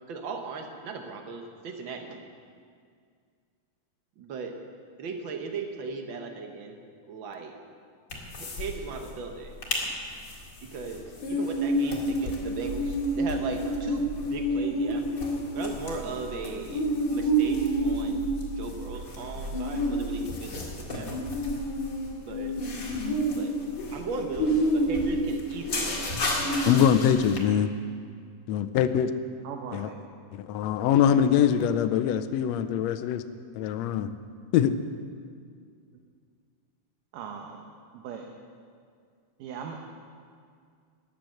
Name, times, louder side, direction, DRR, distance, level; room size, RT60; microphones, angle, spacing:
voice 1, 0.1-2.2 4.2-4.5 5.0-6.8 7.1-7.5 8.4-9.9 10.6-15.1 15.5-16.8 17.1-18.2 18.5-21.2 22.2-22.5 23.4-23.5 23.9-26.3, right 4 dB, 65° right, 4 dB, 1.2 m, -37 dB
sound 1, 8.1-8.7 9.0-9.1 9.4-9.8 10.2-27.4, right 1 dB, 35° left, 2.3 m, -29 dB
sound 2, 12.7-21.4, right 1 dB, 30° right, 1.1 m, -42 dB
voice 2, 26.7-27.7 28.5-29.1 29.7-29.9 30.3-33.2 33.5-34.1 34.5-34.7, left 9 dB, 85° left, 10 dB, 1.5 m, -23 dB
voice 3, 29.4-30.0 37.1-38.3 39.4-39.8, right 7 dB, 85° right, 2 dB, 2.6 m, -39 dB
13.5 x 9.9 x 7.7 m, 2.2 s
omnidirectional pair, 3.7 m